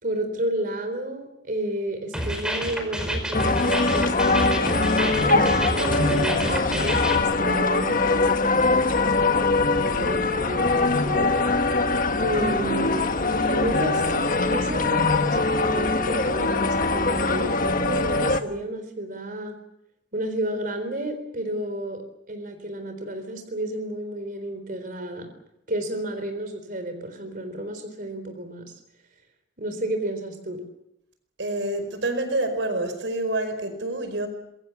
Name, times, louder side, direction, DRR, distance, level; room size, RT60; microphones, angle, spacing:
voice 1, 0.0-4.6 5.2-11.5 12.2-13.1 13.5-19.6 20.1-25.3 25.7-28.6 29.6-30.6, right 1 dB, 50° right, 4.1 m, -32 dB
sound 1, 2.1-7.2, equal, 5° right, 4.9 m, -29 dB
sound 2, 3.3-18.4, left 3 dB, 50° left, 1.5 m, -22 dB
voice 2, 31.4-34.3, right 2 dB, 85° right, 5.0 m, -27 dB
27.0 x 22.0 x 7.2 m
head